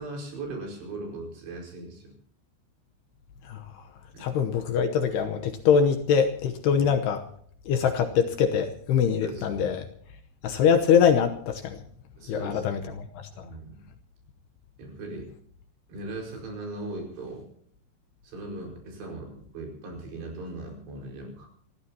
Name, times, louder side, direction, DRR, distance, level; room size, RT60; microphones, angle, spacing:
voice 1, 0.0-2.1 4.1-4.3 6.7-6.9 9.2-9.7 12.2-12.9 13.3-13.8 14.8-15.3 15.9-17.5 18.2-21.5, right 2 dB, 65° right, 0 dB, 7.1 m, -39 dB
voice 2, 3.5-3.8 4.2-7.2 7.7-9.9 10.4-11.8 12.3-13.5, left 7 dB, 75° left, 7 dB, 2.7 m, -24 dB
29.5 x 14.5 x 2.9 m, 0.62 s
omnidirectional pair, 5.5 m